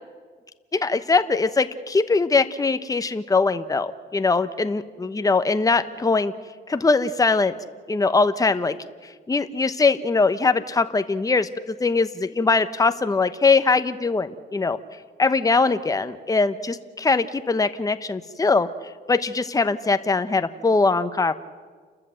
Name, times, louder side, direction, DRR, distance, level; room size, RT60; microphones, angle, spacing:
voice 1, 0.7-6.3 6.7-7.6 7.9-8.8 9.3-11.5 11.8-14.8 15.2-18.7 19.1-21.4, left 4 dB, 15° left, 10 dB, 1.0 m, -21 dB
29.0 x 13.5 x 7.8 m, 1.5 s
cardioid pair, 90°, 20 cm